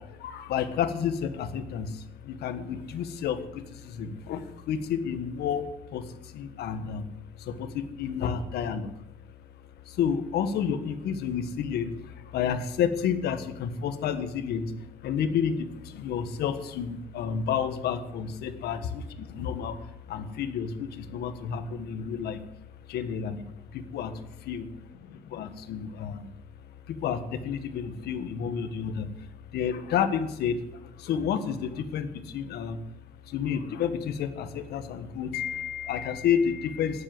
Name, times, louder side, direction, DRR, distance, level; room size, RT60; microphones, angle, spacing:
voice 1, 0.0-7.1 7.4-8.9 9.8-14.7 15.0-22.4 22.9-23.4 23.7-24.7 25.0-26.3 26.9-29.3 29.5-32.8 33.3-37.0, left 7 dB, 75° left, 10 dB, 1.7 m, -30 dB
12.0 x 10.5 x 7.9 m, 0.90 s
cardioid pair, 110°, 17 cm